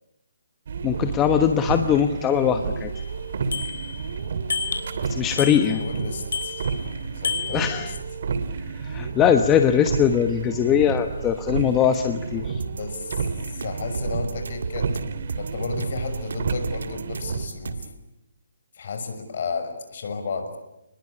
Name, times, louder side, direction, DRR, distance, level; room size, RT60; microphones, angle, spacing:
sound 1, 0.7-17.5, right 5 dB, 55° right, 2.7 m, -31 dB
voice 1, 0.8-2.9 5.1-5.8 7.5-7.9 8.8-12.6, left 9 dB, 15° left, 7 dB, 1.1 m, -21 dB
Bicycle bell, 3.0-3.1 3.5-4.1 4.5-5.0 5.4-6.0 6.3-6.9 7.2-8.0, left 5 dB, 65° left, 3.5 m, -30 dB
voice 2, 5.4-6.7 7.1-8.0 12.7-14.9 15.3-17.9 18.7-20.6, left 4 dB, 50° left, 7 dB, 6.2 m, -33 dB
sound 2, 12.6-18.0, right 5 dB, 75° right, 1.8 m, -34 dB
30.0 x 21.0 x 8.5 m, 0.90 s
hypercardioid pair, 160°, 0 cm